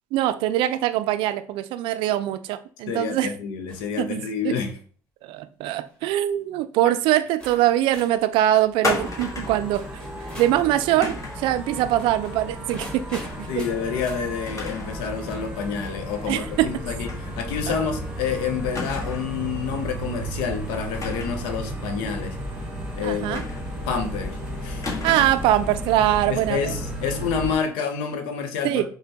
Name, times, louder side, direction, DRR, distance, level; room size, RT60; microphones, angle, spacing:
voice 1, 0.1-3.3 4.0-4.5 5.2-9.8 10.4-13.5 16.3-16.7 23.0-23.4 25.0-26.8 28.6-28.9, right 13 dB, 65° right, 12 dB, 0.3 m, -23 dB
voice 2, 2.9-4.7 13.5-17.1 17.4-22.4 23.0-23.4 23.9-24.9 26.3-28.9, left 6 dB, 75° left, 7 dB, 0.6 m, -28 dB
sound 1, 3.7-4.0 4.5-4.8 5.6-5.9 6.8-6.9 7.4-10.7 11.6-14.3 16.0-16.1 17.4-18.1, equal, 10° left, 1.5 m, -45 dB
sound 2, 8.8-9.7 11.0-11.5 13.1-13.4 13.8-13.9 14.5-15.0 15.3-15.4 17.0-17.3 17.6-17.7 18.7-19.4 20.9-21.5 23.3-23.9 24.8-25.5, left 3 dB, 35° left, 1.1 m, -32 dB
sound 3, 8.8-27.5, right 1 dB, 10° right, 1.3 m, -34 dB
5.1 x 2.1 x 2.8 m, 0.43 s
hypercardioid pair, 60°, 9 cm